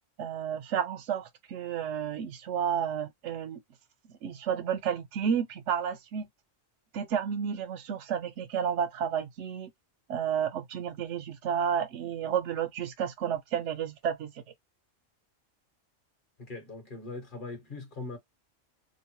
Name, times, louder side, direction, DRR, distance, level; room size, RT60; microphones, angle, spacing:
voice 1, 0.2-3.6 4.2-6.3 6.9-9.7 10.1-14.3, right 8 dB, 70° right, 0.9 m, -31 dB
voice 2, 16.4-18.2, left 3 dB, 45° left, 1.2 m, -40 dB
2.9 x 2.1 x 2.9 m
omnidirectional pair, 1.3 m